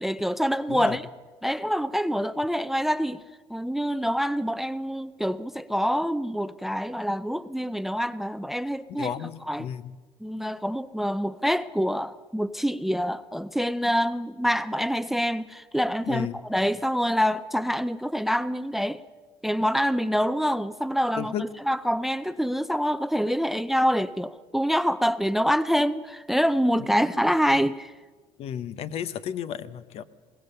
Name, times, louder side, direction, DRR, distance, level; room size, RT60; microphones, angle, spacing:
voice 1, 0.0-1.1 1.4-3.2 3.5-9.1 9.4-9.7 10.2-19.0 19.4-27.9, equal, ahead, 0.5 m, -26 dB
voice 2, 8.9-10.0 16.1-16.4 21.2-21.4 28.4-30.0, left 9 dB, 60° left, 0.9 m, -33 dB
21.5 x 18.5 x 6.7 m
cardioid pair, 110°, 11 cm